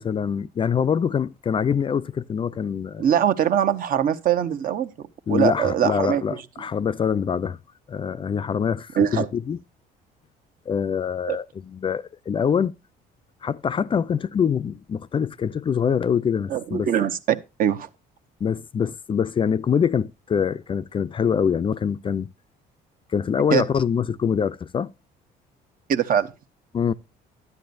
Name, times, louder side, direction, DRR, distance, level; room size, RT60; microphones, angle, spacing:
voice 1, 0.0-3.0 5.3-7.6 7.9-9.6 10.7-12.7 13.4-16.9 18.4-22.3 23.1-24.9 26.7-26.9, left 7 dB, 30° left, 0.4 m, -24 dB
voice 2, 3.0-6.4 9.0-9.3 11.3-11.4 16.5-17.9 23.5-23.6 25.9-26.3, right 9 dB, 55° right, 1.0 m, -22 dB
12.0 x 9.4 x 2.6 m
cardioid pair, 110°, 17 cm